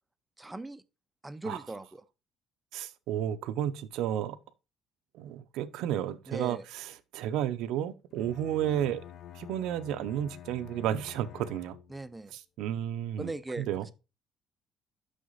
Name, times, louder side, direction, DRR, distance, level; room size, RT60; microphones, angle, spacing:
voice 1, 0.4-0.8 1.2-2.0 6.3-6.7 11.9-12.3 13.2-13.7, right 2 dB, 10° right, 0.4 m, -39 dB
voice 2, 2.7-4.4 5.1-6.8 7.1-9.0 9.3-11.8 12.3-13.3 13.6-13.9, right 11 dB, 80° right, 0.6 m, -32 dB
Bowed string instrument, 8.1-12.2, left 10 dB, 55° left, 0.5 m, -48 dB
6.4 x 5.8 x 3.9 m
cardioid pair, 165°, 0 cm